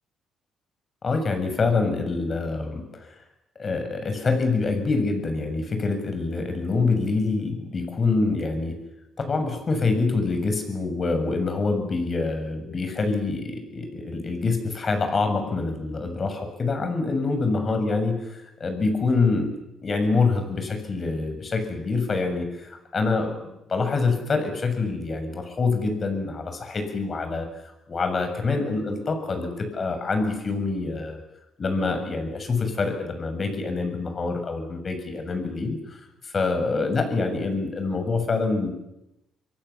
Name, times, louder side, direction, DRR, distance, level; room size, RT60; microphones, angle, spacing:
voice 1, 1.0-3.2 3.6-8.8 9.2-19.6 19.8-31.2 31.6-38.7, left 3 dB, 40° left, 7 dB, 7.3 m, -26 dB
28.0 x 23.0 x 7.3 m, 0.89 s
cardioid pair, 90°, 0 cm